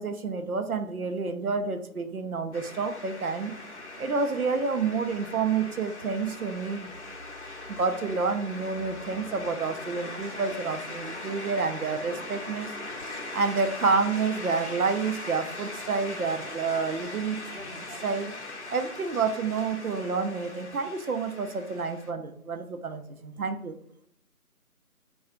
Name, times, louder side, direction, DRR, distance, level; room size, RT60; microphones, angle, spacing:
voice 1, 0.0-3.6 4.0-6.9 7.7-12.7 13.3-17.4 17.7-18.3 18.7-23.7, right 4 dB, 75° right, 7 dB, 0.7 m, -29 dB
sound 1, 2.5-22.1, left 2 dB, 50° left, 0.7 m, -40 dB
3.7 x 2.4 x 4.4 m, 0.68 s
figure-of-eight pair, 175°, 44 cm